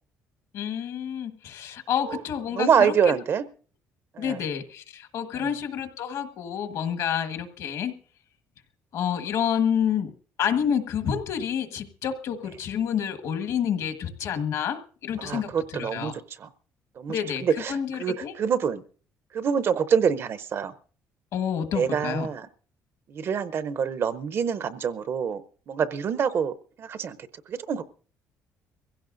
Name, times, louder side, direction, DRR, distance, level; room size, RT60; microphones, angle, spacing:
voice 1, 0.5-3.1 4.2-8.0 8.9-10.1 10.4-16.1 17.1-18.3 21.3-22.3, left 8 dB, 65° left, 8 dB, 1.5 m, -29 dB
voice 2, 2.5-3.4 4.2-4.4 5.4-5.5 15.2-16.5 17.0-17.1 17.4-18.8 19.3-20.7 21.7-22.5 23.1-25.4 25.7-27.2 27.5-27.8, right 7 dB, 45° right, 15 dB, 0.7 m, -26 dB
23.5 x 16.0 x 2.6 m, 0.41 s
cardioid pair, 145°, 6 cm